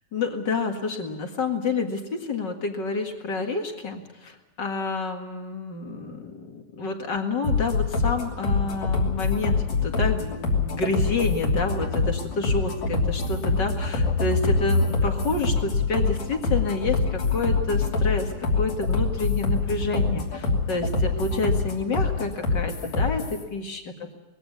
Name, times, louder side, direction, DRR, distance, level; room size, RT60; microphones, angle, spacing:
voice 1, 0.1-24.2, left 3 dB, 40° left, 4 dB, 2.2 m, -29 dB
sound 1, 7.4-23.4, left 3 dB, 65° left, 4.3 m, -25 dB
21.0 x 16.0 x 9.5 m, 1.1 s
omnidirectional pair, 3.4 m